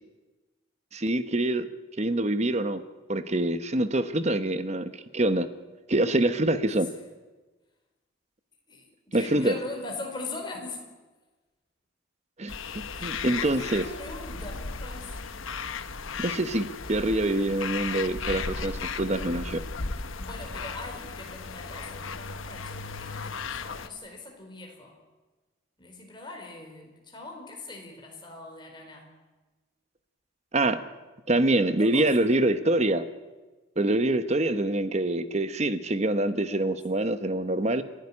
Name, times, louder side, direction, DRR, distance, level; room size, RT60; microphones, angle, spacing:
voice 1, 0.9-1.7 2.0-2.8 3.1-5.5 5.9-6.9 9.1-9.5 12.4-13.8 16.2-18.7 19.0-19.6 30.5-30.8 31.3-33.0 33.8-37.8, right 1 dB, 35° right, 12 dB, 1.0 m, -25 dB
voice 2, 8.7-10.9 12.9-15.4 20.2-24.9 25.8-29.1 31.8-32.1 36.6-37.0, left 2 dB, 20° left, 1 dB, 4.6 m, -41 dB
sound 1, 12.5-23.9, left 5 dB, 85° left, 1.2 m, -36 dB
29.0 x 11.5 x 9.9 m, 1.2 s
head